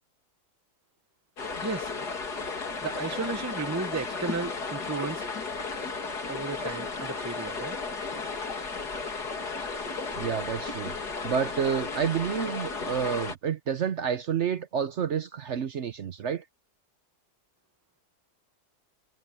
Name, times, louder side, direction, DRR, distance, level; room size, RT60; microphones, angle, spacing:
sound 1, 1.4-13.3, left 4 dB, 85° left, 3.3 m, -34 dB
voice 1, 1.6-1.9 2.8-5.2 6.3-7.8, right 4 dB, 15° right, 0.6 m, -34 dB
voice 2, 10.2-10.9 11.2-16.4, right 7 dB, 55° right, 0.9 m, -29 dB
omnidirectional pair, 1.7 m